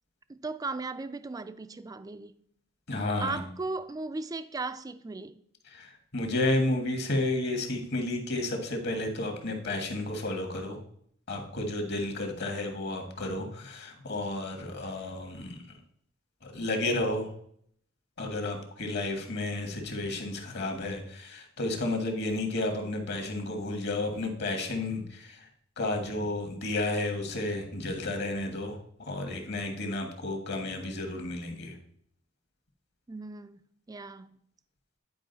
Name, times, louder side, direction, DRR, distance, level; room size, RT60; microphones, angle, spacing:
voice 1, 0.3-2.3 3.2-5.4 33.1-33.6 33.9-34.4, right 3 dB, 20° right, 0.4 m, -36 dB
voice 2, 2.9-3.5 5.6-10.8 11.3-15.6 16.4-17.3 18.2-25.5 25.8-31.8, left 2 dB, 55° left, 1.5 m, -32 dB
9.7 x 4.9 x 4.0 m
head